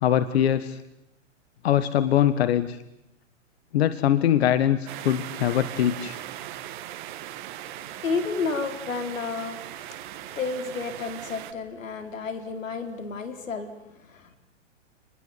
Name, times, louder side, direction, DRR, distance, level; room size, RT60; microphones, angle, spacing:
voice 1, 0.0-0.8 1.6-2.8 3.7-6.2, left 10 dB, 55° left, 13 dB, 1.5 m, -22 dB
sound 1, 4.9-11.5, right 13 dB, 40° right, 1.7 m, -39 dB
voice 2, 7.7-14.4, left 4 dB, 85° left, 9 dB, 5.0 m, -32 dB
28.5 x 21.0 x 9.9 m, 0.82 s
hypercardioid pair, 155°, 38 cm